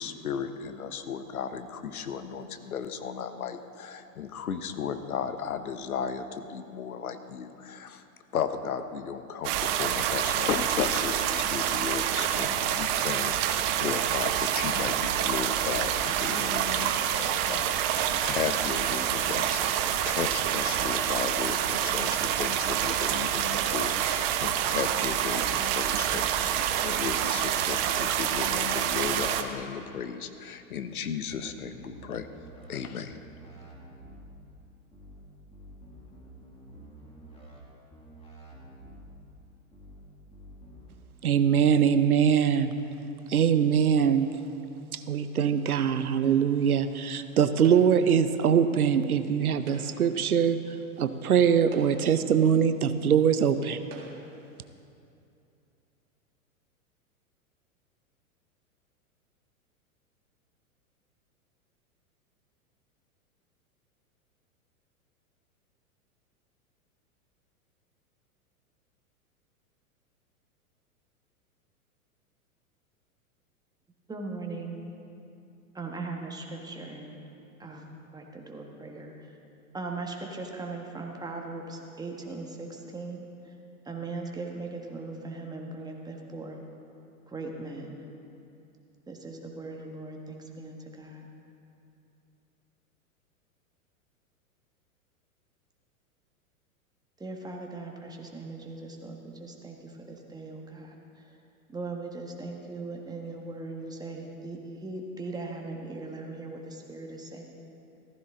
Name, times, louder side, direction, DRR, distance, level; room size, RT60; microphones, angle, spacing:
voice 1, 0.0-8.1 8.3-32.3 32.7-33.2, left 7 dB, 80° left, 10 dB, 0.9 m, -35 dB
sound 1, 9.4-29.4, right 10 dB, 40° right, 0.8 m, -27 dB
sound 2, 31.3-32.8 33.1-34.3 34.9-35.2 35.5-37.6 37.9-39.1 39.7-40.0 40.3-40.9, right 1 dB, 15° left, 2.4 m, -49 dB
voice 2, 41.2-42.7 43.3-44.3 44.9-53.8, right 8 dB, 85° right, 11 dB, 0.8 m, -23 dB
sound 3, 47.6-48.2 49.5-50.2 51.0-51.1 51.6-52.3 53.2-53.3 53.8-54.4, right 4 dB, 65° right, 2.2 m, -47 dB
voice 3, 74.1-74.8 75.7-77.2 77.6-79.3 79.7-83.5 83.8-86.6 87.3-88.0 89.1-91.3 97.2-101.4 101.7-107.4, right 3 dB, 10° right, 1 dB, 1.5 m, -39 dB
14.5 x 14.5 x 3.8 m, 2.7 s
hypercardioid pair, 105°, 43 cm